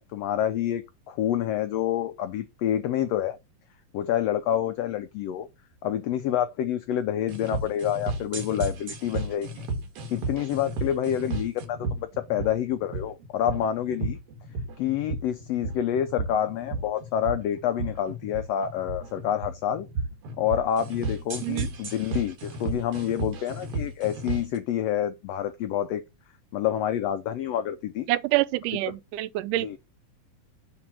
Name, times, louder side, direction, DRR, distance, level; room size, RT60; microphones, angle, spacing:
voice 1, 0.0-3.4 3.9-5.5 5.8-9.7 10.1-14.2 14.8-19.9 20.4-26.0 26.5-28.1 29.6-29.8, left 10 dB, 90° left, 1.4 m, -28 dB
sound 1, 7.3-24.6, right 2 dB, 55° right, 2.2 m, -33 dB
voice 2, 28.1-29.7, right 17 dB, 85° right, 2.1 m, -26 dB
7.9 x 3.6 x 5.9 m
omnidirectional pair, 3.7 m